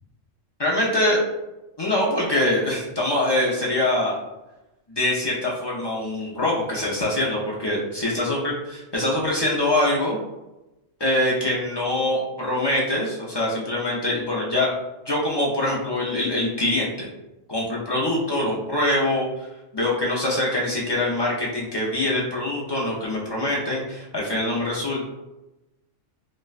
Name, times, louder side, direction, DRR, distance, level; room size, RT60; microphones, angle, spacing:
voice 1, 0.6-1.2 1.8-4.1 4.9-10.2 11.0-14.7 15.1-17.1 17.5-19.5 19.7-25.0, left 1 dB, 45° left, -5 dB, 0.3 m, -24 dB
4.1 x 2.1 x 2.3 m, 0.98 s
omnidirectional pair, 1.3 m